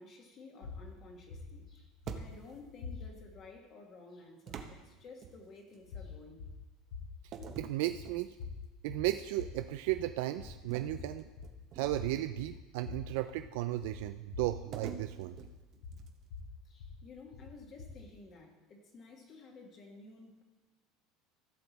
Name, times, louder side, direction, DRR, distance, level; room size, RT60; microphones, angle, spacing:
voice 1, 0.0-6.4 16.6-20.4, left 3 dB, 35° left, 1 dB, 1.5 m, -53 dB
sound 1, 0.6-3.4 5.8-18.2, left 5 dB, 85° left, 2.6 m, -47 dB
sound 2, 2.1-2.7 4.5-5.8 7.3-8.7 9.1-9.4 10.7-12.2 14.7-16.4, right 7 dB, 40° right, 1.0 m, -47 dB
voice 2, 7.6-8.3 8.8-11.3 11.7-15.4, right 15 dB, 75° right, 9 dB, 0.4 m, -35 dB
14.5 x 6.7 x 4.1 m, 1.2 s
supercardioid pair, 145°, 0 cm